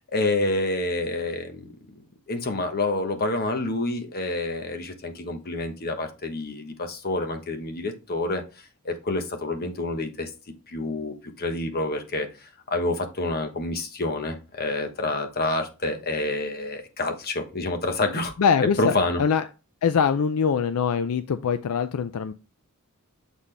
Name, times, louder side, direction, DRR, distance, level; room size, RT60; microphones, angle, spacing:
voice 1, 0.1-2.0 2.3-8.4 8.8-10.3 10.7-12.3 12.7-18.3 18.8-19.2, left 2 dB, 45° left, 6 dB, 1.1 m, -28 dB
voice 2, 18.4-19.4 19.8-22.3, left 6 dB, 75° left, 11 dB, 0.4 m, -23 dB
7.3 x 4.0 x 3.3 m, 0.31 s
head